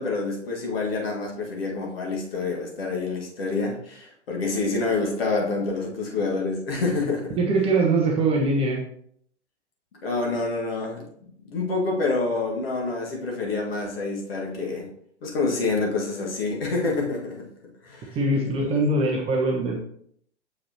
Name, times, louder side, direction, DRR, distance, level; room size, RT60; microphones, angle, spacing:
voice 1, 0.0-7.4 10.0-14.9 15.2-17.5 17.8-18.2 18.6-18.7, left 3 dB, 55° left, -1 dB, 1.9 m, -27 dB
voice 2, 7.4-8.8 18.1-19.8, right 2 dB, 15° right, 0 dB, 0.7 m, -22 dB
7.1 x 4.8 x 3.0 m, 0.66 s
figure-of-eight pair, 115°, 36 cm